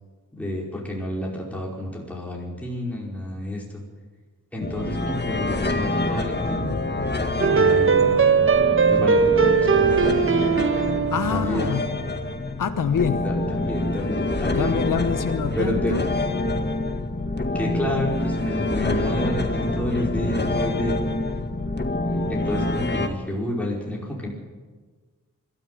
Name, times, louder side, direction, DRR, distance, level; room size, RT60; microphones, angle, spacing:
voice 1, 0.3-3.6 4.5-6.7 7.4-8.4 8.9-10.2 11.3-11.7 13.2-14.8 15.6-15.9 17.5-21.0 22.3-24.3, left 1 dB, 5° left, -3 dB, 5.0 m, -29 dB
sound 1, 4.6-23.1, left 2 dB, 30° left, 1.8 m, -26 dB
sound 2, 7.4-12.1, right 5 dB, 40° right, 1.3 m, -19 dB
voice 2, 11.1-11.8 12.6-13.3 14.5-16.0, left 7 dB, 70° left, 9 dB, 1.1 m, -25 dB
21.5 x 13.5 x 9.2 m, 1.4 s
wide cardioid pair, 80°, 33 cm